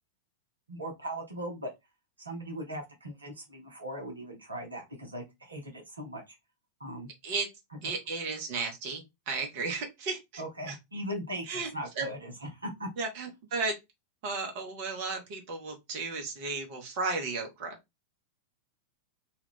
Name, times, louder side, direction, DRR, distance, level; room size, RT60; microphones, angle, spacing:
voice 1, 0.7-1.7 2.2-6.2 6.8-7.1 7.7-7.9 10.4-12.9, equal, 80° right, 0.8 m, -39 dB
voice 2, 7.8-10.4 10.7-10.8 11.5-11.7 12.0-12.1 13.0-13.7 14.2-17.8, right 4 dB, 50° right, 0.8 m, -34 dB
2.3 x 2.3 x 3.6 m
figure-of-eight pair, 90°, 0 cm